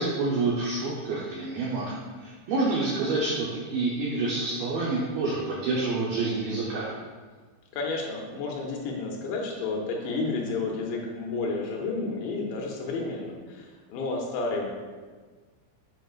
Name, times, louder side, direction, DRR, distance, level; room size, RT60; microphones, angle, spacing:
voice 1, 0.0-6.9, right 3 dB, 80° right, -5 dB, 2.1 m, -28 dB
voice 2, 7.7-14.7, left 3 dB, 80° left, 0 dB, 2.9 m, -31 dB
9.0 x 5.4 x 2.4 m, 1.4 s
omnidirectional pair, 5.3 m